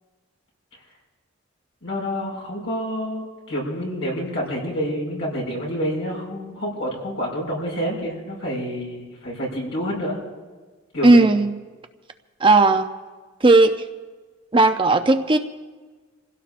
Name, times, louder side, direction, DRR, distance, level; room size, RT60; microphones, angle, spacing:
voice 1, 1.8-10.2 10.9-11.2, equal, 75° left, -3 dB, 6.0 m, -28 dB
voice 2, 11.0-11.5 12.4-12.9 13.4-13.7 14.5-15.4, right 2 dB, 25° right, 7 dB, 0.6 m, -15 dB
28.0 x 16.5 x 2.5 m, 1.3 s
head